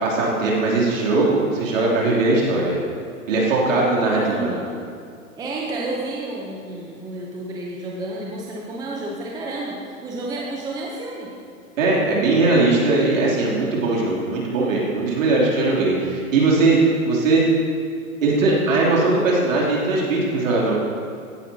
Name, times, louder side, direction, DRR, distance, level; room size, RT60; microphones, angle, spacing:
voice 1, 0.0-2.7 3.3-4.5 11.8-17.4 18.2-20.8, right 3 dB, 60° right, -4 dB, 3.1 m, -19 dB
voice 2, 4.0-4.7 5.4-11.3, right 2 dB, 10° right, -3 dB, 0.7 m, -30 dB
16.5 x 10.5 x 2.8 m, 2.3 s
hypercardioid pair, 130°, 43 cm